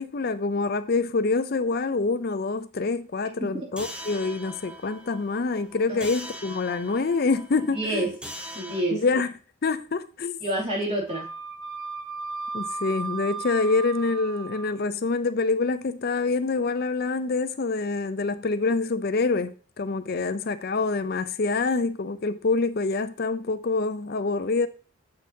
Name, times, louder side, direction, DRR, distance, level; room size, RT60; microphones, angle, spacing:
voice 1, 0.0-8.1 8.9-9.3 9.6-10.4 12.5-24.7, left 3 dB, 45° left, 0.5 m, -26 dB
sound 1, 3.8-8.8, equal, 5° right, 0.6 m, -41 dB
voice 2, 7.6-8.1 8.5-9.0 10.4-11.3, right 1 dB, 30° right, 2.7 m, -28 dB
Wind instrument woodwind instrument, 11.1-14.7, right 4 dB, 80° right, 1.1 m, -35 dB
7.5 x 6.3 x 2.8 m
head